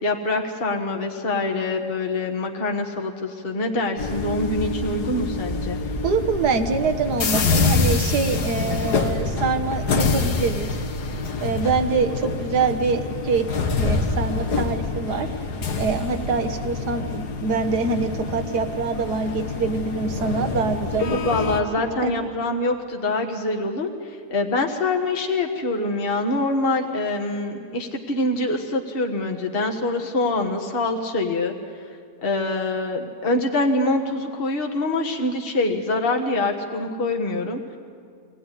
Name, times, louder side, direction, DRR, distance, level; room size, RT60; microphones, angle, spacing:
voice 1, 0.0-5.8 21.0-31.5 32.2-37.8, left 2 dB, 35° left, 2 dB, 1.6 m, -25 dB
sound 1, 4.0-21.6, left 4 dB, 85° left, 2.0 m, -26 dB
voice 2, 6.0-10.7 11.4-13.5 13.7-15.3 15.8-21.4 22.0-22.1, right 4 dB, 80° right, 7 dB, 1.8 m, -25 dB
23.5 x 17.5 x 10.0 m, 2.2 s
omnidirectional pair, 1.7 m